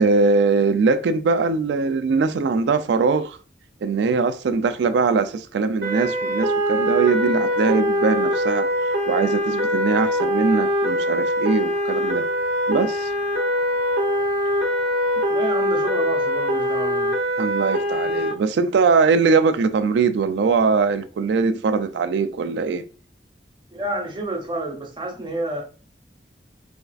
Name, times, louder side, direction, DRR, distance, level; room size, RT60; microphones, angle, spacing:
voice 1, 0.0-3.4 3.8-8.7 9.1-12.3 12.7-13.1 17.4-22.9, right 4 dB, 90° right, 0.3 m, -21 dB
sound 1, 5.8-18.3, equal, 65° right, 0.7 m, -23 dB
voice 2, 15.3-17.2 23.7-25.6, right 2 dB, 25° right, 0.8 m, -29 dB
4.2 x 2.4 x 2.4 m
head